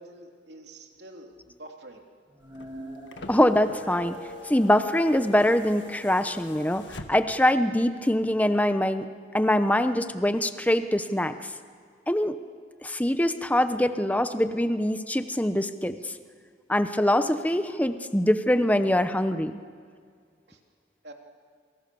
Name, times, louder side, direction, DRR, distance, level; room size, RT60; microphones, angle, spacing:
voice 1, 0.0-1.3 1.6-2.0 20.5-20.6 21.0-21.1, right 1 dB, 65° right, 2 dB, 3.2 m, -46 dB
sound 1, 2.3-6.6, equal, 20° right, 7.1 m, -44 dB
sound 2, 2.4-7.5 8.7-8.8, left 2 dB, 90° left, 1.8 m, -46 dB
voice 2, 3.3-4.2 4.5-9.0 9.3-11.3 12.1-12.4 12.8-16.1 16.7-19.6, left 1 dB, 10° left, 10 dB, 1.0 m, -23 dB
27.5 x 24.0 x 7.0 m, 2.1 s
head